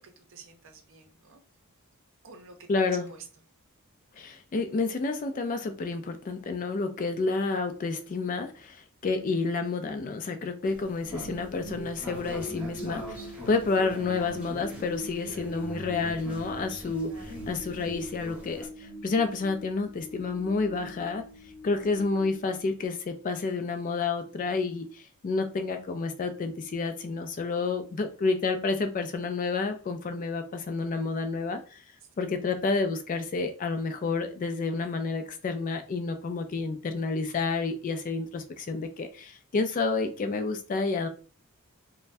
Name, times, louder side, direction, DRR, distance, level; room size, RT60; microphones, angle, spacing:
voice 1, 0.0-1.4 2.2-3.3 17.1-17.5, right 5 dB, 60° right, 0.6 m, -50 dB
voice 2, 2.7-3.1 4.2-21.2 21.6-31.8 32.2-41.1, left 4 dB, 35° left, 0.3 m, -30 dB
sound 1, 10.6-18.7, equal, 5° right, 1.0 m, -43 dB
sound 2, 11.1-23.2, equal, 65° left, 0.9 m, -43 dB
2.5 x 2.1 x 3.2 m
head